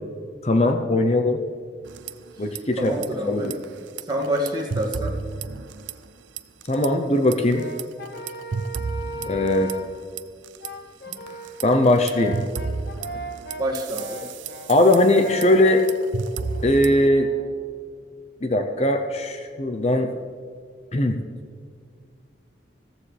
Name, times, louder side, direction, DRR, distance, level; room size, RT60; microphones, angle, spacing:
voice 1, 0.4-1.4 2.4-2.9 3.2-3.5 6.7-7.7 9.3-9.7 11.6-12.4 14.7-15.8 16.6-17.3 18.4-20.1 20.9-21.2, left 1 dB, 35° left, 6 dB, 0.7 m, -20 dB
sound 1, 1.8-2.6 2.9-3.1 3.4-6.1 6.4-6.9 7.3-10.7 11.1-17.1, right 4 dB, 75° right, 0.5 m, -33 dB
voice 2, 2.8-3.6 4.1-5.1 11.1-11.3 13.6-14.2, right 1 dB, 20° right, -2 dB, 2.1 m, -27 dB
Brass instrument, 7.5-10.0 10.6-17.6, equal, 55° left, 1.0 m, -38 dB
15.0 x 14.5 x 3.3 m, 2.1 s
head